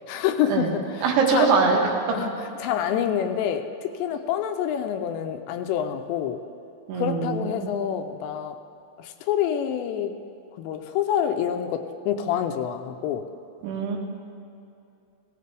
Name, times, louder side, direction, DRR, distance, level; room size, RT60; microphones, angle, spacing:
voice 1, 0.1-1.1 1.3-1.5 2.1-2.3 2.6-6.4 6.9-8.6 9.0-10.1 10.6-13.3, left 9 dB, 85° left, 7 dB, 2.8 m, -27 dB
voice 2, 1.0-1.8 2.1-2.2 6.9-7.7 13.6-14.0, right 5 dB, 85° right, 0 dB, 4.0 m, -22 dB
17.5 x 16.0 x 3.4 m, 2.7 s
omnidirectional pair, 5.2 m